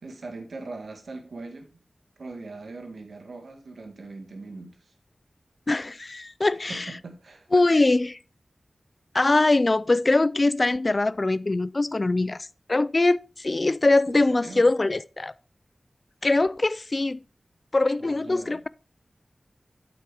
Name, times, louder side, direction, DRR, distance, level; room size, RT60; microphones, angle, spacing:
voice 1, 0.0-1.8 2.2-4.9 6.7-7.5 14.1-14.7 18.0-18.6, right 3 dB, 85° right, 1.8 m, -41 dB
voice 2, 5.7-6.9 7.5-8.2 9.1-15.3 16.2-17.2 17.7-18.7, left 2 dB, 40° left, 0.3 m, -22 dB
8.8 x 8.1 x 3.5 m
wide cardioid pair, 80°, 0 cm